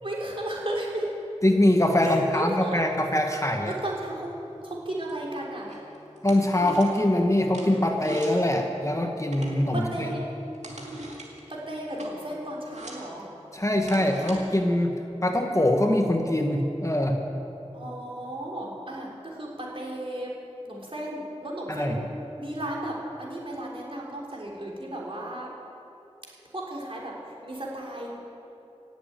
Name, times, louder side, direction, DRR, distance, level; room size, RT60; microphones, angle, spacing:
voice 1, 0.0-1.1 2.0-2.8 3.6-4.3 4.6-5.8 9.7-10.2 11.5-13.3 17.7-20.3 20.6-21.9 22.4-25.5 26.5-27.2 27.4-28.2, right 1 dB, 50° right, -4 dB, 3.4 m, -34 dB
voice 2, 1.4-3.7 6.2-10.1 13.5-17.2 21.7-22.0, left 1 dB, 25° left, 3 dB, 1.3 m, -23 dB
sound 1, 4.3-14.4, right 1 dB, 80° right, 2.4 m, -44 dB
17.5 x 7.7 x 8.7 m, 3.0 s
wide cardioid pair, 45°, 12 cm